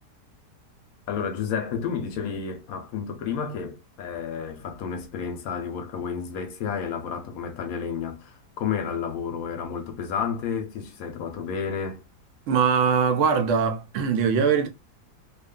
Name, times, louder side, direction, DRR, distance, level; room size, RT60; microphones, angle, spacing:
voice 1, 1.1-12.0, left 7 dB, 70° left, 1.0 m, -31 dB
voice 2, 12.5-14.7, right 6 dB, 70° right, 0.7 m, -22 dB
2.7 x 2.4 x 2.2 m
omnidirectional pair, 1.8 m